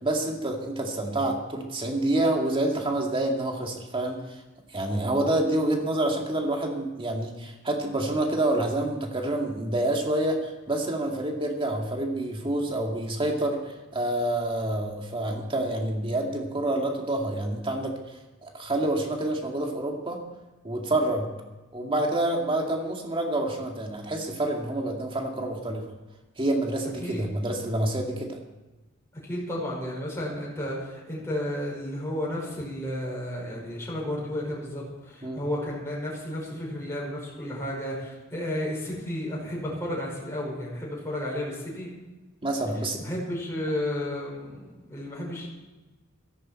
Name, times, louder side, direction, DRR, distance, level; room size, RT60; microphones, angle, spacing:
voice 1, 0.0-4.4 4.7-17.9 18.4-20.2 20.6-21.3 21.7-25.8 26.4-28.4 35.2-35.5 42.4-43.0, right 1 dB, 25° right, 1 dB, 2.1 m, -27 dB
voice 2, 29.2-41.9 43.0-45.5, left 1 dB, 15° left, -5 dB, 5.3 m, -32 dB
16.5 x 14.5 x 4.4 m, 1.1 s
head